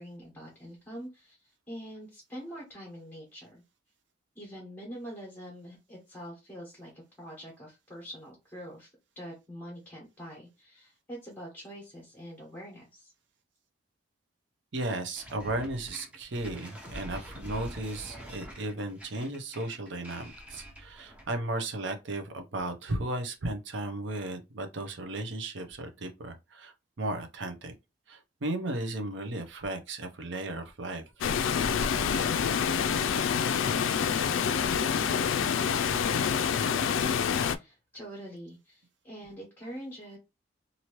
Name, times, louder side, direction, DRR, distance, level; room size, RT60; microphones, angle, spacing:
voice 1, 0.0-3.6 4.3-8.9 9.1-13.1 37.4-40.2, equal, 10° left, 1.1 m, -44 dB
voice 2, 14.7-27.7 28.1-31.0, right 2 dB, 65° right, 0.7 m, -35 dB
sound 1, 15.2-21.4, equal, 5° right, 0.8 m, -45 dB
Water, 31.2-37.6, left 7 dB, 80° left, 0.3 m, -27 dB
2.9 x 2.6 x 3.0 m
head